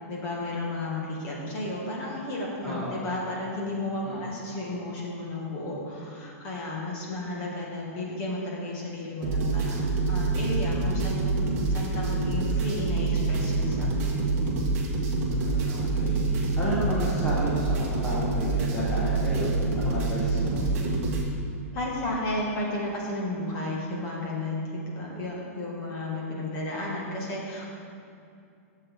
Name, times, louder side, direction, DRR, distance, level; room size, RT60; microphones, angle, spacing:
voice 1, 0.1-11.3 11.7-14.2 21.7-27.7, left 1 dB, 30° left, -3 dB, 1.7 m, -33 dB
voice 2, 2.6-3.0 4.0-4.4 15.3-20.6, equal, 10° left, -8 dB, 1.1 m, -33 dB
sound 1, 9.2-21.2, right 3 dB, 25° right, 1.3 m, -26 dB
12.5 x 7.2 x 3.7 m, 2.5 s
supercardioid pair, 170°, 8 cm